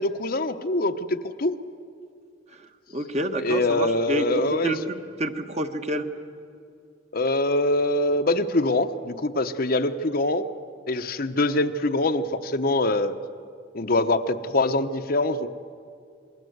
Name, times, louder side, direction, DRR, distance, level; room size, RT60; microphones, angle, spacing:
voice 1, 0.0-1.5 3.4-4.7 7.1-10.4 10.9-13.1 13.7-15.5, left 2 dB, 50° left, 8 dB, 0.9 m, -24 dB
voice 2, 2.9-4.8 5.2-6.1, right 1 dB, 35° right, 6 dB, 1.3 m, -28 dB
27.0 x 21.0 x 8.0 m, 2.3 s
head